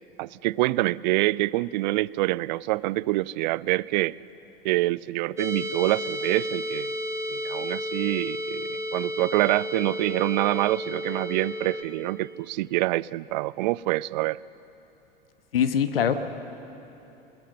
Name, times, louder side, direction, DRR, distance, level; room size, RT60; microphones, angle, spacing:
voice 1, 0.2-4.2 4.6-6.9 7.3-14.4, right 18 dB, 50° right, 22 dB, 0.4 m, -26 dB
sound 1, 5.4-11.8, left 1 dB, 10° right, 2.6 m, -32 dB
voice 2, 15.5-16.1, left 8 dB, 75° left, 10 dB, 1.2 m, -22 dB
21.5 x 21.0 x 6.6 m, 2.9 s
figure-of-eight pair, 90°, 29 cm